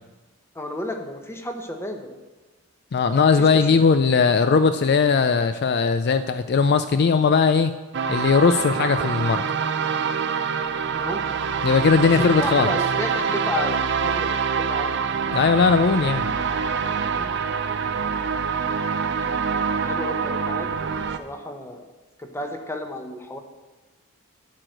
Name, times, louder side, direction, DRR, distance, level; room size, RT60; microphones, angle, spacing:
voice 1, 0.5-2.2 3.4-3.8 10.9-11.4 12.0-14.4 14.7-15.0 17.1-17.3 19.7-20.7 21.2-21.9 22.2-23.4, left 1 dB, 10° left, 4 dB, 0.9 m, -32 dB
voice 2, 2.9-7.7 8.1-9.4 11.6-12.7 15.3-16.3, left 5 dB, 45° left, 10 dB, 0.4 m, -19 dB
sound 1, 7.9-21.2, right 6 dB, 50° right, 0.5 m, -25 dB
13.0 x 4.7 x 7.8 m, 1.2 s
head